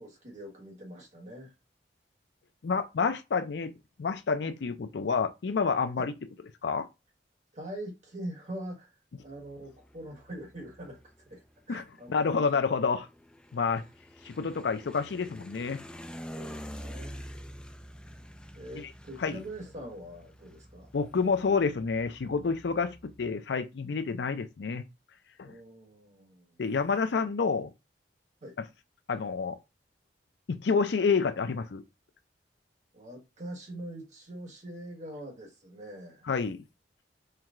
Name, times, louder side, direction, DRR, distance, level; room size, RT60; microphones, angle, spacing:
voice 1, 0.0-1.5 6.0-6.1 7.5-11.4 11.7-12.4 16.4-17.2 18.5-20.9 25.4-26.5 28.4-28.5 32.9-36.2, right 1 dB, 40° right, 1.3 m, -43 dB
voice 2, 2.6-3.7 4.0-6.1 6.6-6.9 11.7-11.8 12.1-13.1 13.5-13.8 14.3-15.8 19.2-19.4 20.9-24.8 25.4-25.5 26.6-27.7 29.1-29.6 30.5-31.8 36.3-36.6, left 5 dB, 70° left, 0.5 m, -28 dB
sound 1, 9.2-23.3, equal, 5° left, 0.3 m, -48 dB
4.5 x 2.2 x 3.6 m
head